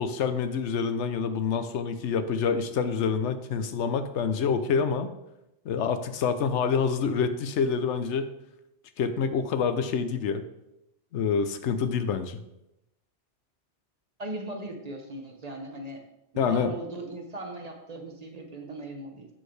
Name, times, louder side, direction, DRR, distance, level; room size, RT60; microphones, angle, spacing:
voice 1, 0.0-5.1 5.7-8.3 9.0-10.4 11.1-12.4 16.4-16.7, left 6 dB, 85° left, 10 dB, 0.9 m, -27 dB
voice 2, 14.2-16.0 16.3-19.3, right 2 dB, 40° right, 3 dB, 0.9 m, -38 dB
7.6 x 6.4 x 3.2 m, 0.87 s
omnidirectional pair, 1.2 m